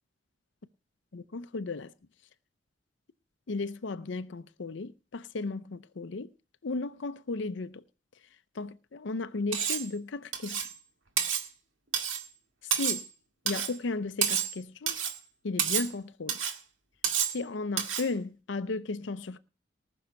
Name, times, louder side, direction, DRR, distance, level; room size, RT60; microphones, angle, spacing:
voice 1, 1.1-1.9 3.5-6.3 6.6-7.8 8.5-10.6 12.6-13.0 13.4-15.0 15.4-16.4 17.3-19.4, left 3 dB, 70° left, 0.6 m, -35 dB
Cutlery silverware, 9.5-9.9 10.3-10.7 11.2-11.5 11.9-12.2 12.7-13.1 13.5-13.7 14.2-14.6 14.9-15.2 15.6-15.9 16.3-16.6 17.0-17.4 17.8-18.1, right 8 dB, 90° right, 1.9 m, -29 dB
19.0 x 6.3 x 5.8 m
head